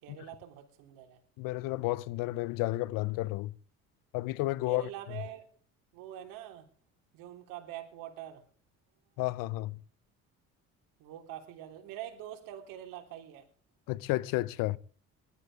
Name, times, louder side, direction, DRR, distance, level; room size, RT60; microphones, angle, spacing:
voice 1, 0.0-1.2 4.6-5.4 5.9-6.7 7.1-8.4 11.0-13.4, right 11 dB, 75° right, 3.4 m, -44 dB
voice 2, 1.4-3.5 4.1-5.2 9.2-9.8 13.9-14.8, left 18 dB, 75° left, 0.9 m, -32 dB
20.5 x 12.5 x 3.5 m
hypercardioid pair, 65°, 34 cm